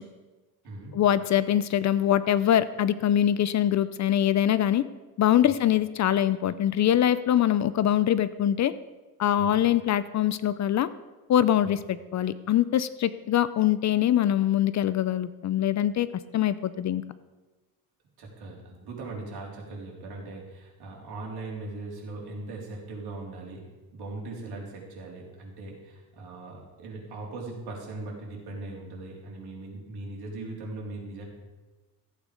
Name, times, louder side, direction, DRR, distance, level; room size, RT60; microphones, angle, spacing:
voice 1, 0.9-4.8 5.2-8.7 9.2-10.9 11.3-16.1 16.3-17.0, left 11 dB, 45° left, 15 dB, 0.5 m, -23 dB
voice 2, 18.2-31.2, right 2 dB, 70° right, -2 dB, 3.5 m, -39 dB
14.5 x 8.4 x 5.1 m, 1.2 s
cardioid pair, 135°, 40 cm